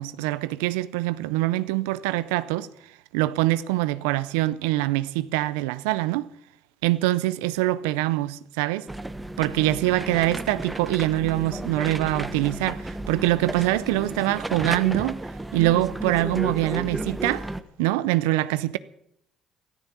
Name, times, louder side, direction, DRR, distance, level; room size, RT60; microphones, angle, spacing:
voice 1, 0.0-2.7 3.1-6.3 6.8-8.9 9.4-15.2 15.5-17.4 17.8-18.8, right 17 dB, 85° right, 0.5 m, -24 dB
sound 1, 8.9-17.6, right 1 dB, 15° right, 1.2 m, -33 dB
14.0 x 13.5 x 7.3 m
supercardioid pair, 65°, 0 cm